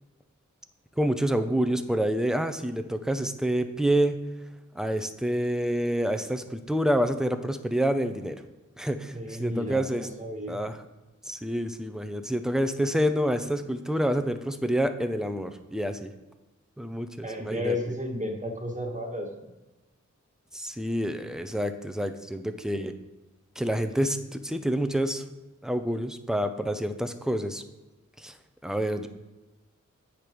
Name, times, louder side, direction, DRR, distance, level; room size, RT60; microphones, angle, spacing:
voice 1, 1.0-4.3 4.7-8.4 8.8-10.1 10.5-10.8 11.2-16.1 16.8-17.8 20.5-22.9 23.6-25.2 25.6-27.6 28.2-28.3 28.6-29.1, equal, ahead, 8 dB, 0.6 m, -28 dB
voice 2, 9.1-10.6 17.2-19.5, left 1 dB, 25° right, 0 dB, 1.5 m, -33 dB
8.2 x 5.1 x 4.6 m, 1.1 s
wide cardioid pair, 50°, 31 cm